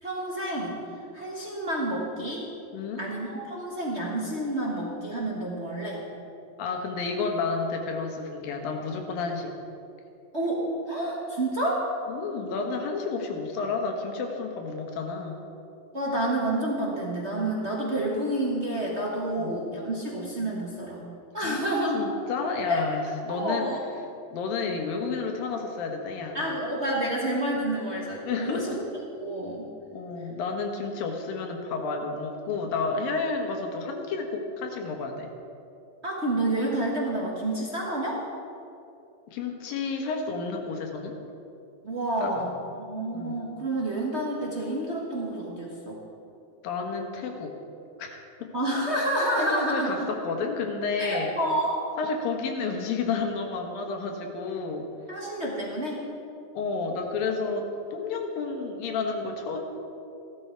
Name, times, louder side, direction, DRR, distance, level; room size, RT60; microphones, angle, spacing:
voice 1, 0.0-0.8 1.1-2.5 3.0-6.0 10.3-11.9 15.9-21.0 21.3-22.1 22.7-22.8 23.3-23.8 26.3-28.8 29.2-29.7 36.0-38.2 41.8-46.0 48.5-50.1 51.0-51.8 55.1-56.0, right 1 dB, 60° right, -4 dB, 0.7 m, -29 dB
voice 2, 2.7-3.1 6.6-9.5 12.1-15.4 19.3-19.5 21.4-21.6 21.9-23.7 24.3-26.4 28.2-28.8 29.9-35.3 39.3-41.1 42.2-42.3 43.1-43.4 46.6-47.5 48.0-48.5 49.4-50.0 50.2-51.3 52.0-54.9 56.5-59.6, left 4 dB, 85° left, 3 dB, 3.1 m, -31 dB
15.5 x 12.5 x 4.6 m, 2.7 s
omnidirectional pair, 3.9 m